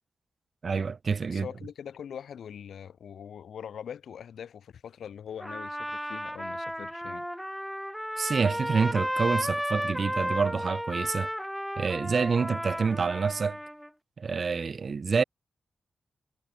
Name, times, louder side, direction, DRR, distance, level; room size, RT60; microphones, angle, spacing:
voice 1, 0.6-1.5 8.2-11.3 11.8-13.6 14.2-15.2, right 5 dB, 55° right, 0.7 m, -27 dB
voice 2, 1.3-7.3, left 8 dB, 90° left, 3.3 m, -42 dB
Trumpet, 5.4-13.9, equal, ahead, 1.0 m, -33 dB
cardioid pair, 75°, 0 cm